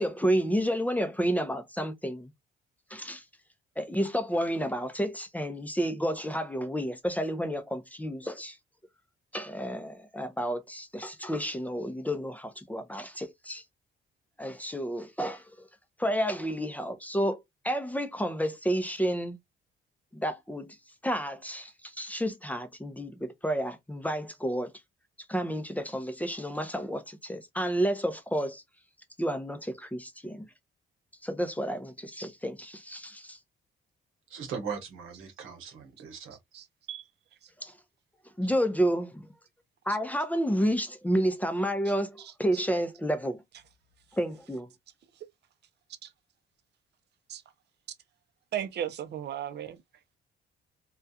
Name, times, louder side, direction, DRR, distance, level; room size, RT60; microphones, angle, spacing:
voice 1, 0.0-2.3 2.9-3.2 3.8-8.6 9.3-13.6 14.4-15.7 16.0-19.4 20.1-20.8 21.0-24.7 25.3-28.6 29.2-30.5 31.2-33.4 37.6-37.7 38.4-39.3 39.9-43.4 44.1-44.7, equal, 10° left, 0.5 m, -30 dB
voice 2, 34.3-36.4 36.9-37.1, right 6 dB, 90° right, 0.9 m, -39 dB
voice 3, 48.5-49.8, right 10 dB, 60° right, 0.5 m, -35 dB
2.3 x 2.2 x 2.6 m
cardioid pair, 90°, 20 cm